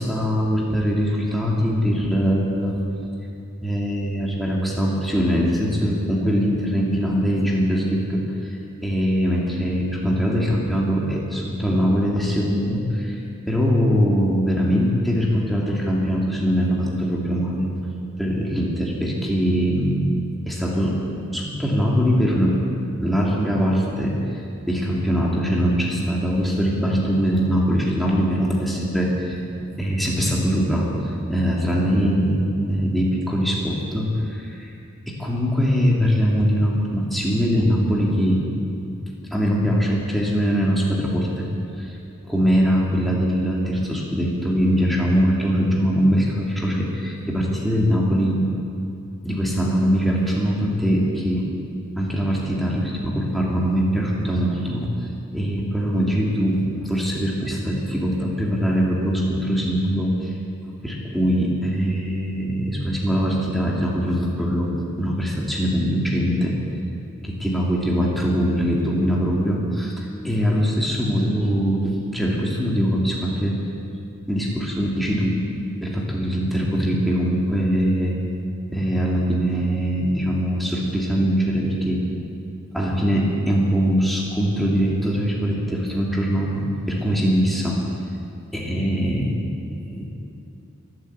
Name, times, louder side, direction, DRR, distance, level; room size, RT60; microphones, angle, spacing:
voice 1, 0.0-2.8 3.6-8.2 8.8-13.2 13.5-17.7 18.2-20.1 20.5-22.6 23.0-24.4 24.7-29.4 29.8-30.9 31.3-34.7 35.1-38.5 38.8-39.0 39.3-41.5 41.8-42.0 42.2-48.5 49.2-51.5 52.0-54.9 55.3-60.3 60.8-66.6 67.2-73.6 74.3-75.5 75.8-78.2 78.7-82.1 82.7-87.8 88.5-89.3 89.9-90.2, equal, ahead, -4 dB, 2.5 m, -22 dB
22.0 x 7.8 x 8.1 m, 2.6 s
head